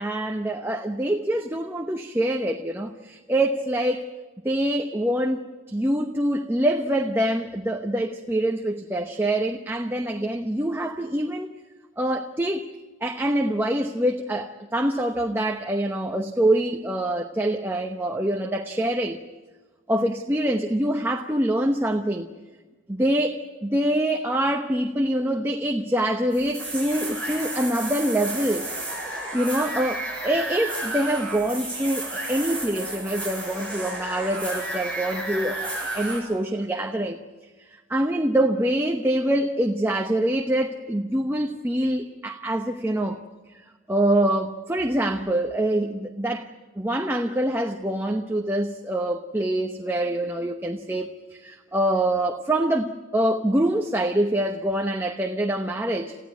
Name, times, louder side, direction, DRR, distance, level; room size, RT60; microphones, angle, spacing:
voice 1, 0.0-4.1 4.4-11.5 12.0-12.7 13.0-19.2 19.9-22.3 22.9-28.7 29.3-37.2 37.6-43.2 43.9-46.5 46.8-56.2, right 1 dB, 10° right, 0.9 m, -25 dB
sound 1, 26.3-36.2, right 2 dB, 5° left, 7.2 m, -32 dB
28.5 x 15.5 x 9.2 m
head